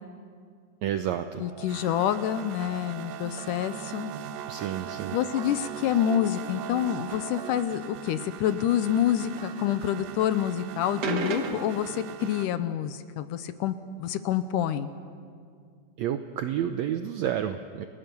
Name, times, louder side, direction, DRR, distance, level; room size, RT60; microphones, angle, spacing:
voice 1, 0.8-1.4 4.5-5.2 16.0-17.9, right 10 dB, 85° right, 8 dB, 1.6 m, -30 dB
voice 2, 1.4-4.1 5.1-14.9, left 10 dB, 75° left, 12 dB, 2.1 m, -27 dB
sound 1, 1.4-12.5, right 10 dB, 70° right, 1.8 m, -40 dB
sound 2, 11.0-12.0, right 2 dB, 55° right, 1.2 m, -31 dB
29.5 x 18.0 x 6.9 m, 2.2 s
omnidirectional pair, 4.0 m